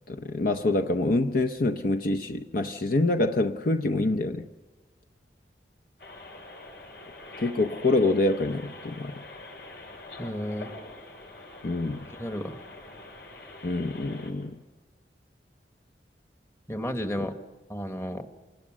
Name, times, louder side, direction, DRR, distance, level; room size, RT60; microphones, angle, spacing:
voice 1, 0.1-4.5 7.4-9.2 11.6-12.0 13.6-14.6, left 2 dB, 50° left, 0.7 m, -26 dB
sound 1, 6.0-14.3, left 2 dB, 70° left, 7.1 m, -45 dB
voice 2, 10.2-10.7 12.1-12.6 16.7-17.4 17.7-18.3, equal, 15° left, 1.2 m, -33 dB
27.0 x 20.0 x 6.2 m
head